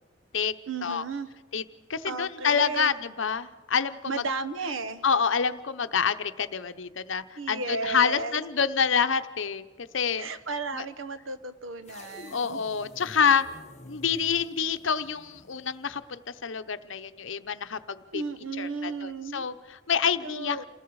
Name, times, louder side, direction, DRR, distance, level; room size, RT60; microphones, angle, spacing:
voice 1, 0.7-1.3 2.0-2.9 4.1-5.0 7.4-8.4 10.2-12.6 18.1-19.5 20.2-20.6, right 3 dB, 90° right, 11 dB, 1.2 m, -34 dB
voice 2, 1.9-4.2 5.0-10.3 10.7-10.8 12.3-13.5 13.8-18.2 18.6-20.6, left 6 dB, 70° left, 11 dB, 0.9 m, -27 dB
sound 1, 11.8-16.1, left 2 dB, 35° left, 1.1 m, -49 dB
28.0 x 19.5 x 4.8 m, 1.2 s
head